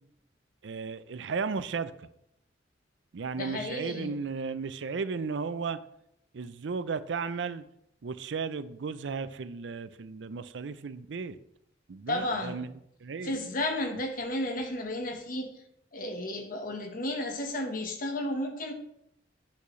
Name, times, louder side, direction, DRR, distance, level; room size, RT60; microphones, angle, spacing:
voice 1, 0.6-1.9 3.1-5.8 6.3-7.6 8.0-11.4 11.9-12.7 13.0-13.4, right 5 dB, 75° right, 14 dB, 0.5 m, -34 dB
voice 2, 3.3-4.1 12.1-12.6 13.2-15.5 15.9-18.7, left 1 dB, 50° left, 5 dB, 1.2 m, -33 dB
8.3 x 8.3 x 3.1 m, 0.77 s
head